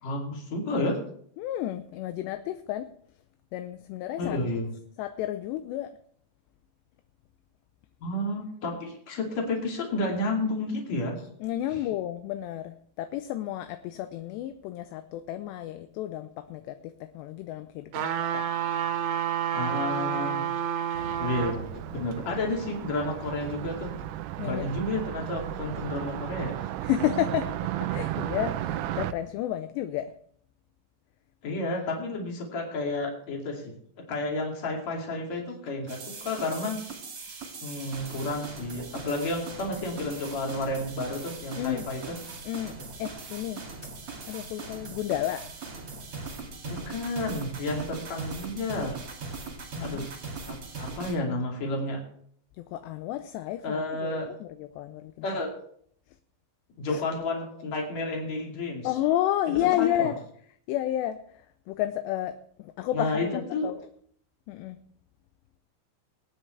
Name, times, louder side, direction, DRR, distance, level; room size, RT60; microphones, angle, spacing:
voice 1, 0.0-1.0 4.2-4.7 8.0-11.1 19.5-20.4 21.2-24.1 24.4-26.7 31.4-33.7 34.1-36.8 37.6-42.1 46.6-49.0 49.8-50.0 50.5-52.0 53.6-54.3 55.2-55.5 56.8-58.9 59.6-60.1 62.9-63.7, left 2 dB, 40° left, 0 dB, 3.3 m, -31 dB
voice 2, 1.4-2.9 3.5-4.4 5.0-6.0 11.4-18.5 24.4-24.7 26.8-30.1 41.6-41.9 42.4-43.6 44.3-45.5 49.7-50.1 52.6-55.3 56.8-57.0 58.8-60.2 60.7-63.8 64.5-64.8, left 13 dB, 80° left, 9 dB, 2.5 m, -31 dB
sound 1, 17.9-21.6 22.1-22.2, right 9 dB, 75° right, 3.3 m, -29 dB
Car passing by, 21.0-29.1, right 13 dB, 90° right, 2.3 m, -34 dB
sound 2, 35.9-51.1, right 4 dB, 40° right, 2.3 m, -40 dB
23.5 x 9.1 x 3.3 m, 0.63 s
omnidirectional pair, 5.4 m